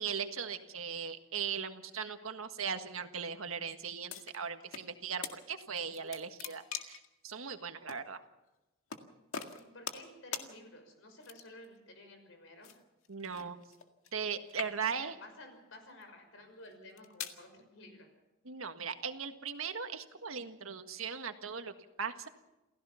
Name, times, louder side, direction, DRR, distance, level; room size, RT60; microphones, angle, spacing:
voice 1, 0.0-8.2 13.1-13.6 14.1-15.1 18.4-21.7 22.0-22.3, right 6 dB, 90° right, 7 dB, 1.6 m, -38 dB
sound 1, 4.1-4.9 5.2-5.4 5.8-7.1 7.9-8.0 8.9-9.0 9.3-10.1 10.3-10.5 11.2-11.7 12.6-14.2 14.5-15.1 15.8-16.0 16.7-17.4, left 7 dB, 90° left, 1.9 m, -42 dB
voice 2, 9.5-12.7 15.0-18.1, left 1 dB, 70° left, 6 dB, 5.8 m, -53 dB
28.5 x 16.0 x 5.7 m, 1.0 s
head